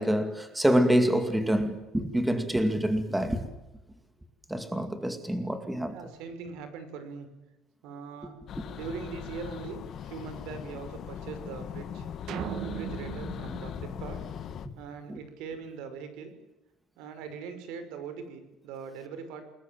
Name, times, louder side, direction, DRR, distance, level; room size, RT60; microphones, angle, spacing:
voice 1, 0.0-3.4 4.5-6.0 8.6-8.7 15.1-15.2, equal, 5° right, 2.2 m, -26 dB
voice 2, 5.9-7.3 7.8-8.4 8.7-12.1 12.6-14.2 14.8-16.3 17.0-19.4, right 5 dB, 85° right, 5.7 m, -41 dB
sound 1, 8.5-14.7, left 8 dB, 45° left, 1.8 m, -39 dB
sound 2, 12.3-14.8, right 10 dB, 55° right, 1.5 m, -38 dB
29.0 x 21.0 x 7.6 m
cardioid pair, 155°, 0 cm